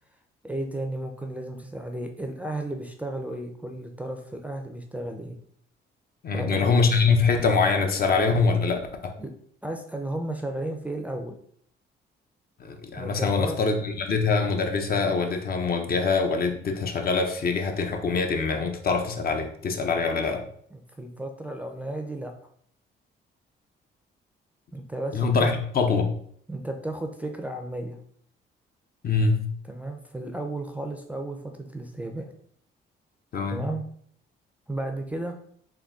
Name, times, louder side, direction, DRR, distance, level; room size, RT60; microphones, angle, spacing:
voice 1, 0.4-5.4 6.3-6.6 9.2-9.3 9.6-11.4 13.0-13.6 20.7-22.3 24.7-25.5 26.5-28.0 29.7-32.3 33.5-33.8 34.7-35.4, right 1 dB, 5° right, 3 dB, 0.4 m, -33 dB
voice 2, 6.2-9.1 12.6-20.5 25.1-26.1 29.0-29.5 33.3-33.7, left 4 dB, 50° left, 4 dB, 0.6 m, -24 dB
3.8 x 2.2 x 3.5 m, 0.63 s
cardioid pair, 90°, 20 cm